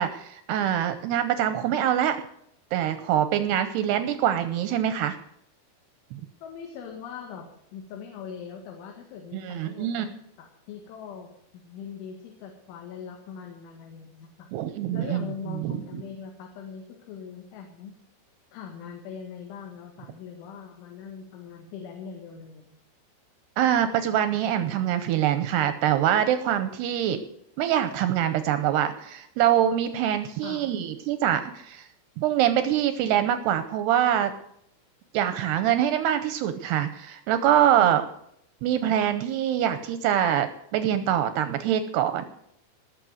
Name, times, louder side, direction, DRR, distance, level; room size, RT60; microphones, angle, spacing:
voice 1, 0.0-2.2 2.7-5.2 6.1-6.2 9.3-10.1 14.5-15.2 15.6-15.8 23.6-27.2 27.6-31.9 32.2-34.3 35.1-38.0 38.6-42.3, right 10 dB, 80° right, 10 dB, 2.5 m, -24 dB
voice 2, 6.4-10.1 10.4-14.5 14.9-18.0 18.5-22.7 30.4-30.7 37.8-38.0, left 7 dB, 75° left, 2 dB, 4.2 m, -41 dB
18.5 x 6.9 x 7.8 m, 0.74 s
omnidirectional pair, 5.7 m